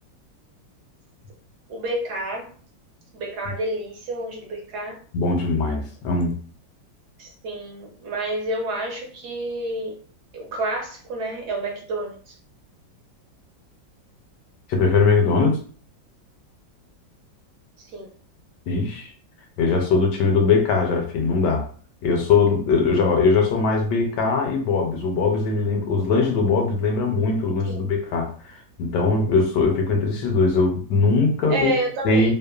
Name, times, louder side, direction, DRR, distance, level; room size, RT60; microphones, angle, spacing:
voice 1, 1.7-2.5 3.1-5.0 7.2-10.0 10.3-12.4 17.8-18.1 27.7-27.9 31.5-32.3, right 1 dB, 65° right, 0 dB, 1.1 m, -29 dB
voice 2, 5.1-6.4 14.7-15.6 18.7-19.1 19.6-21.7 22.0-31.8 32.0-32.3, left 4 dB, 75° left, 2 dB, 1.2 m, -21 dB
3.1 x 2.1 x 2.3 m, 0.43 s
omnidirectional pair, 2.0 m